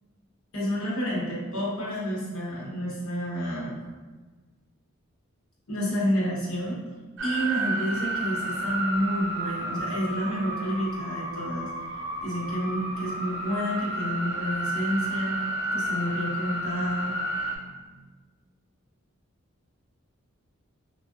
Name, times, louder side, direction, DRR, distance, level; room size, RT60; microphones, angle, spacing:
voice 1, 0.5-3.8 5.7-6.8 7.2-11.7 12.2-15.4 15.7-17.9, equal, 85° left, -6 dB, 1.0 m, -29 dB
sound 1, 7.2-17.6, right 1 dB, 60° right, 0.4 m, -31 dB
3.5 x 2.4 x 2.3 m, 1.3 s
head